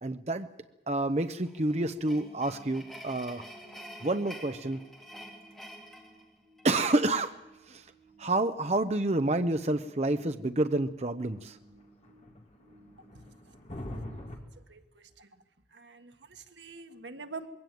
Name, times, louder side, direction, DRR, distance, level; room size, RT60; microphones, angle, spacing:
voice 1, 0.0-0.5 0.9-3.4 4.0-4.8 6.6-7.4 7.7-7.9 8.2-11.6, right 2 dB, 35° right, 8 dB, 0.7 m, -29 dB
sound 1, 1.4-6.9, equal, ahead, 3.0 m, -48 dB
sound 2, 2.0-14.1, right 1 dB, 55° right, 8.0 m, -59 dB
sound 3, 11.3-14.4, left 1 dB, 35° left, 2.4 m, -44 dB
voice 2, 13.9-14.4 14.7-15.3 15.7-17.5, right 4 dB, 90° right, 7 dB, 1.6 m, -46 dB
21.5 x 16.5 x 9.2 m, 1.1 s
head